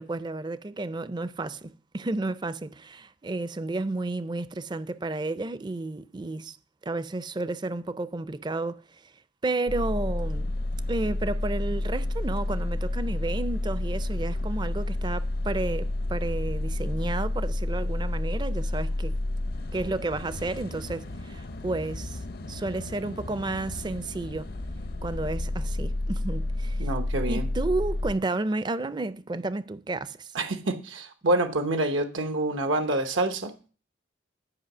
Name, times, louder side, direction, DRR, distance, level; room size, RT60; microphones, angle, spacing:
voice 1, 0.0-6.6 6.8-9.1 9.4-10.5 10.9-19.1 19.7-22.2 22.5-24.5 25.0-26.9 27.3-30.3, right 2 dB, 25° right, 0.4 m, -32 dB
sound 1, 9.7-28.1, left 1 dB, 50° left, 0.6 m, -30 dB
voice 2, 26.8-27.5 30.3-33.5, right 2 dB, 85° right, 0.9 m, -27 dB
11.0 x 5.4 x 6.0 m
head